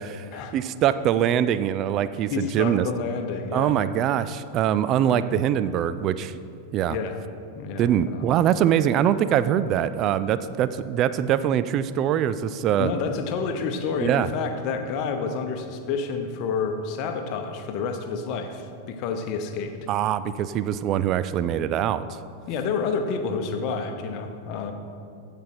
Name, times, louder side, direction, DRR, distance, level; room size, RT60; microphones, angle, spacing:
voice 1, 0.5-2.9 3.5-6.3 6.7-7.0 7.8-12.9 14.0-14.3 19.9-22.1, right 10 dB, 35° right, 14 dB, 0.3 m, -23 dB
voice 2, 2.3-3.7 6.9-7.2 7.5-8.2 12.8-19.8 22.5-24.7, left 5 dB, 40° left, 6 dB, 0.9 m, -29 dB
15.0 x 5.3 x 4.4 m, 2.4 s
figure-of-eight pair, 90°, 0 cm